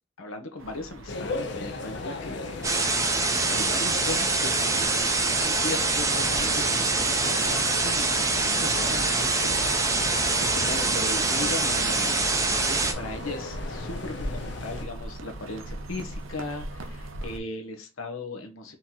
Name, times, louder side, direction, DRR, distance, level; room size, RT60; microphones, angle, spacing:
voice 1, 0.2-3.2 3.5-9.6 10.5-12.2 12.5-18.8, left 2 dB, 85° left, 5 dB, 0.9 m, -37 dB
sound 1, 0.6-17.4, right 2 dB, 80° right, 0.7 m, -39 dB
sound 2, 1.1-14.8, left 3 dB, 55° left, 0.6 m, -37 dB
sound 3, 2.6-12.9, right 3 dB, 15° right, 0.5 m, -25 dB
4.4 x 2.8 x 3.7 m, 0.32 s
head